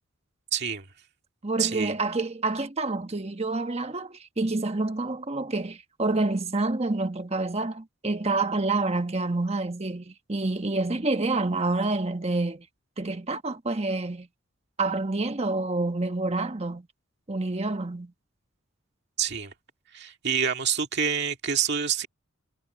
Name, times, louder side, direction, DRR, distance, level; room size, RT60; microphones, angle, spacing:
voice 1, 0.5-0.9 1.6-1.9 19.2-19.5 19.9-22.1, right 7 dB, 55° right, 2.0 m, -27 dB
voice 2, 1.4-12.7 13.0-14.3 14.8-16.9 17.3-18.1, right 2 dB, 30° right, 1.2 m, -28 dB
head